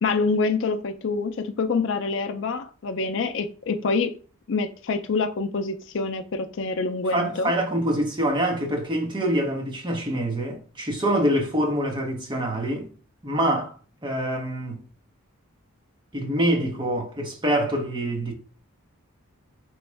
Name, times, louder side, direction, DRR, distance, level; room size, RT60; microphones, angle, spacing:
voice 1, 0.0-4.1 4.5-7.5, left 4 dB, 55° left, 0.4 m, -26 dB
voice 2, 7.1-12.9 13.2-13.7 14.0-14.8 16.1-18.3, right 1 dB, 20° right, 0.7 m, -25 dB
3.5 x 3.0 x 3.3 m
head